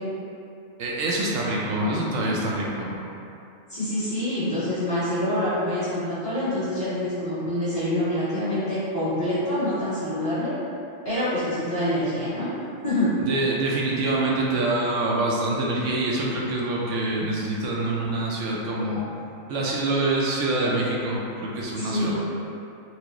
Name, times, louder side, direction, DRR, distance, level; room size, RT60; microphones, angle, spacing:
voice 1, 0.8-3.0 13.2-19.0 19.5-22.1, right 2 dB, 90° right, -4 dB, 1.0 m, -25 dB
voice 2, 3.7-10.5 11.0-12.5 12.8-13.1 21.8-22.1, left 1 dB, 30° left, -15 dB, 1.3 m, -26 dB
4.4 x 2.0 x 2.9 m, 2.7 s
omnidirectional pair, 1.3 m